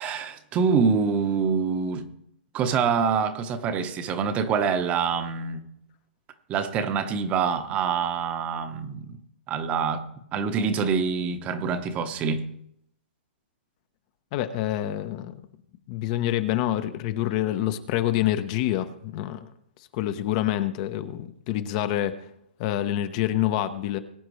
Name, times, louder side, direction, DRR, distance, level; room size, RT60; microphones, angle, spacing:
voice 1, 0.0-2.1 2.5-5.6 6.5-9.2 9.5-10.0 10.3-12.4, right 6 dB, 25° right, 1.0 m, -25 dB
voice 2, 14.3-15.4 15.9-19.5 19.9-22.2 22.6-24.0, left 13 dB, 40° left, 0.9 m, -27 dB
21.0 x 8.8 x 3.2 m
hypercardioid pair, 145°, 6 cm